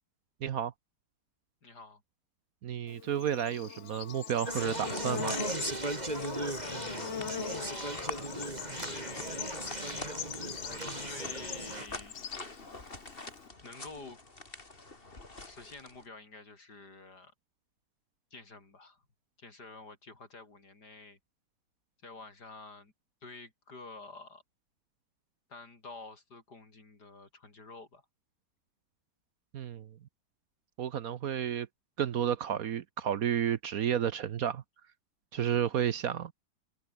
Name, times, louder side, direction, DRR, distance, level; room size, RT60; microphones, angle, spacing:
voice 1, 0.4-0.7 2.6-5.4 29.5-29.9 30.8-31.7 32.0-34.6 35.3-36.3, right 9 dB, 60° right, 1.2 m, -31 dB
voice 2, 1.6-2.0 6.3-8.4 8.7-9.7 10.7-12.2 12.8-13.2 13.6-14.2 15.4-17.3 18.3-19.0 19.4-21.2 22.0-22.9 23.2-24.4 25.5-28.0, left 3 dB, 65° left, 5.0 m, -49 dB
Bird / Insect, 2.9-13.5, left 9 dB, 50° left, 1.0 m, -42 dB
sound 1, 4.5-16.1, left 3 dB, 30° left, 3.1 m, -47 dB
Conversation, 4.5-11.9, right 2 dB, 25° right, 3.8 m, -37 dB
omnidirectional pair, 1.9 m